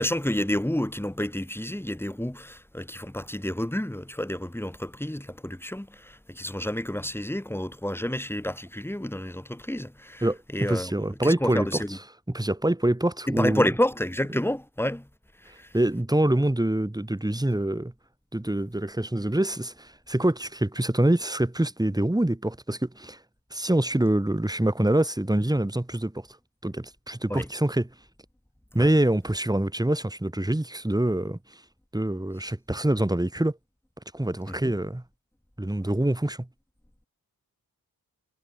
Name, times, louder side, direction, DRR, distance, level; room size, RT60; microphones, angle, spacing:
voice 1, 0.0-10.3 10.5-12.0 13.3-15.1 15.4-15.7 27.3-27.5 28.8-28.9 34.5-34.7, left 1 dB, 5° left, 6.4 m, -29 dB
voice 2, 10.2-11.8 12.3-13.7 15.5-17.9 18.3-23.2 23.5-26.3 26.6-27.9 28.7-31.4 31.9-33.6 34.1-35.0 35.6-36.5, right 1 dB, 10° right, 5.5 m, -25 dB
wide cardioid pair, 125°, 36 cm